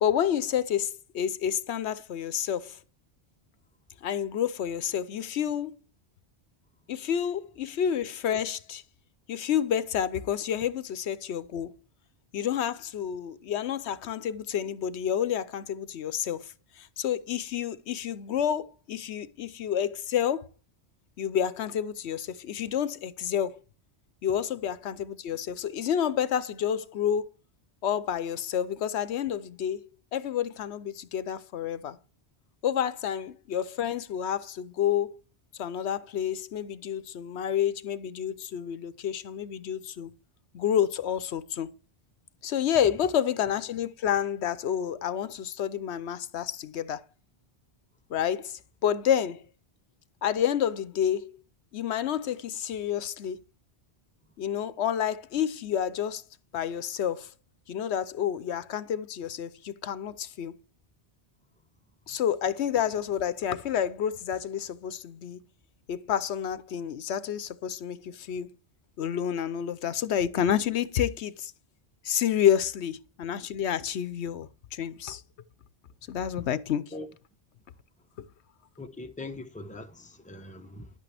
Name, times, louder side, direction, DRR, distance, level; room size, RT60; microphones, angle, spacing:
voice 1, 0.0-2.8 4.0-5.8 6.9-8.8 9.3-11.7 12.3-20.4 21.2-23.5 24.2-27.3 27.8-32.0 32.6-35.2 35.6-40.1 40.5-41.7 42.4-47.0 48.1-49.4 50.2-51.4 51.7-53.4 54.4-56.2 56.5-57.3 57.7-60.5 62.1-65.4 65.9-68.5 69.0-71.5 72.0-75.2 76.1-76.8 78.2-78.3, left 9 dB, 85° left, 1.0 m, -29 dB
voice 2, 78.8-80.9, left 2 dB, 10° left, 0.8 m, -41 dB
11.5 x 8.4 x 3.4 m
omnidirectional pair, 1.1 m